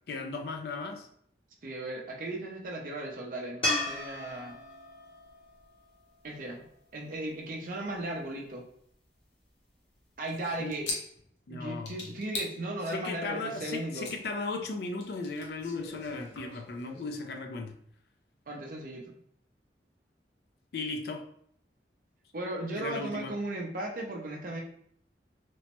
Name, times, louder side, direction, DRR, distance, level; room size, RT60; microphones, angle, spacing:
voice 1, 0.1-1.1 10.6-10.8 11.5-11.9 12.9-17.7 20.7-21.3 22.8-23.3, left 3 dB, 65° left, 4 dB, 0.4 m, -36 dB
voice 2, 1.6-4.6 6.2-6.7 6.9-8.6 10.2-10.9 11.5-14.1 18.5-19.2 22.3-24.6, right 1 dB, 50° right, 0 dB, 0.5 m, -36 dB
sound 1, 3.6-6.9 10.1-10.2, left 1 dB, 30° left, 0.7 m, -35 dB
sound 2, 10.2-11.5 11.9-12.5 12.8-14.1 14.5-17.0, left 2 dB, 90° left, 0.8 m, -40 dB
3.0 x 2.1 x 2.9 m, 0.66 s
head